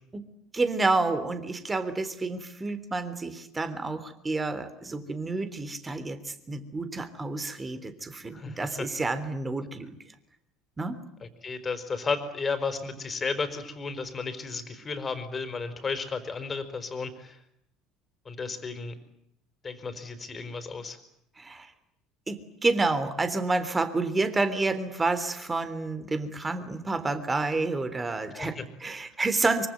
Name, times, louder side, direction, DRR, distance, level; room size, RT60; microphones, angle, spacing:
voice 1, 0.5-9.9 10.8-11.0 21.4-21.7 22.3-29.7, right 3 dB, 20° right, 12 dB, 3.4 m, -29 dB
voice 2, 8.3-8.9 11.2-17.4 18.2-18.9 19.6-21.0 28.3-28.6, left 4 dB, 30° left, 10 dB, 4.6 m, -33 dB
24.5 x 24.5 x 9.4 m, 0.75 s
hypercardioid pair, 65°, 0 cm